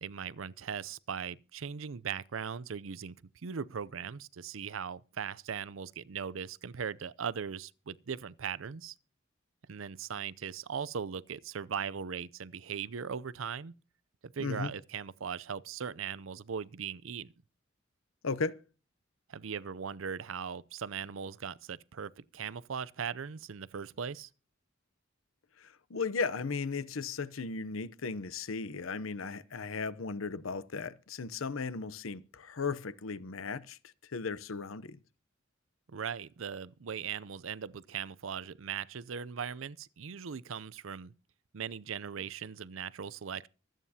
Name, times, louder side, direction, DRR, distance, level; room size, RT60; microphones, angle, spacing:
voice 1, 0.0-3.2 3.4-8.9 9.7-13.7 14.2-17.3 19.3-24.3 35.9-41.1 41.5-43.5, right 7 dB, 80° right, 0.6 m, -39 dB
voice 2, 14.4-14.7 18.2-18.6 25.6-33.8 34.1-35.0, left 4 dB, 90° left, 0.7 m, -36 dB
24.5 x 9.0 x 2.8 m
head